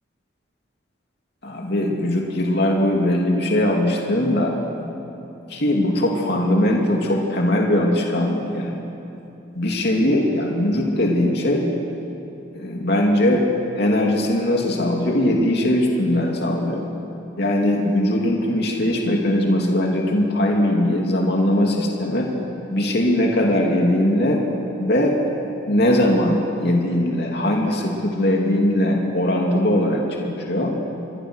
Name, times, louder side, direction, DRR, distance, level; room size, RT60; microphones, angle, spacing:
voice 1, 1.4-4.5 5.5-8.9 9.5-11.7 12.5-13.4 13.7-16.8 17.4-22.3 22.7-24.4 24.8-25.1 25.7-30.7, left 1 dB, 55° left, -1 dB, 2.8 m, -20 dB
28.0 x 22.5 x 6.4 m, 2.8 s
head